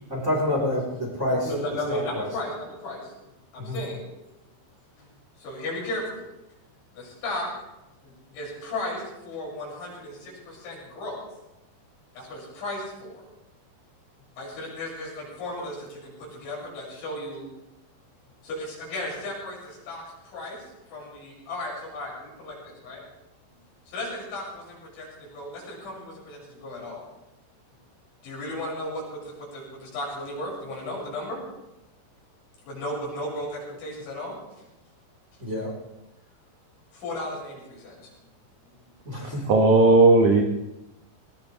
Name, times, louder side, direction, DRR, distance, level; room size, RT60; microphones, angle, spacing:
voice 1, 0.1-1.5 1.9-2.3 3.6-3.8 35.4-35.7 39.0-39.5, left 1 dB, 15° right, -2 dB, 3.7 m, -27 dB
voice 2, 1.4-4.1 5.0-5.1 5.4-6.2 6.9-7.5 8.0-11.2 12.1-13.2 14.4-17.5 18.4-20.7 20.9-23.0 23.9-27.1 28.2-31.4 32.7-34.4 36.9-38.1 38.6-38.9, left 1 dB, 75° left, -4 dB, 8.7 m, -35 dB
voice 3, 39.5-40.4, right 2 dB, 80° right, 2 dB, 1.7 m, -16 dB
19.5 x 19.5 x 3.4 m, 0.93 s
omnidirectional pair, 5.3 m